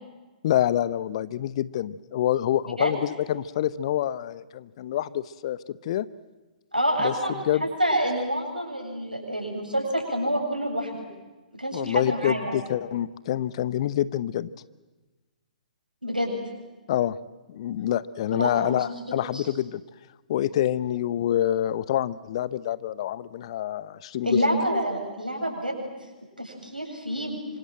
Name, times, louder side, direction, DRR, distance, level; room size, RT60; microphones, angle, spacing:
voice 1, 0.4-5.6 5.8-6.1 7.0-7.6 11.7-14.5 16.9-17.2 17.5-19.8 20.3-24.4, left 12 dB, 45° left, 18 dB, 0.9 m, -27 dB
voice 2, 6.7-7.3 7.6-10.9 11.6-12.6 16.0-16.4 18.4-18.8 19.3-19.5 24.2-25.9 26.4-27.4, equal, 90° right, 2 dB, 7.6 m, -27 dB
26.5 x 26.0 x 7.7 m, 1.2 s
figure-of-eight pair, 120°, 5 cm